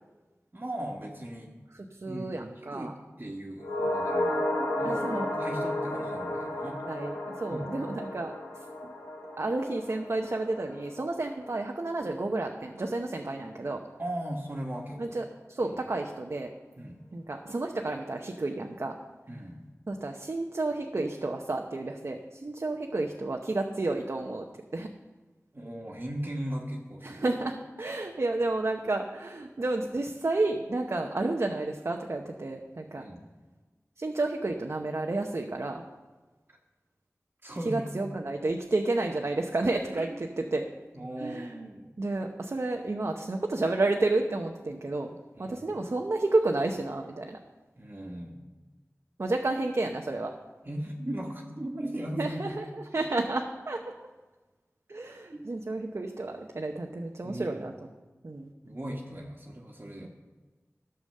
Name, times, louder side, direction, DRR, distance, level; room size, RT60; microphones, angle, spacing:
voice 1, 0.5-1.5 2.0-2.4 2.7-2.9 3.2-4.4 4.8-5.0 5.3-6.8 7.5-7.7 14.0-15.2 15.6-15.7 16.8-17.0 19.3-19.6 25.5-27.3 33.0-33.2 37.4-37.8 39.9-40.2 40.9-41.9 45.3-45.6 47.8-48.5 50.6-52.5 55.3-55.5 57.2-57.6 58.6-60.1, right 1 dB, 40° right, -1 dB, 1.5 m, -37 dB
voice 2, 1.7-2.9 4.8-5.3 6.8-8.3 8.8-8.9 9.4-13.8 15.0-16.5 17.1-18.9 19.9-24.4 24.7-24.9 27.0-33.0 34.0-35.8 37.6-40.7 41.2-41.5 42.0-47.4 49.2-50.3 52.2-53.8 54.9-57.7 58.2-58.5 60.0-60.1, right 2 dB, 60° right, 2 dB, 0.8 m, -31 dB
sound 1, 3.6-12.1 12.4-12.5, left 1 dB, 90° left, 3.9 m, -33 dB
12.0 x 7.0 x 6.6 m, 1.2 s
wide cardioid pair, 50°, 5 cm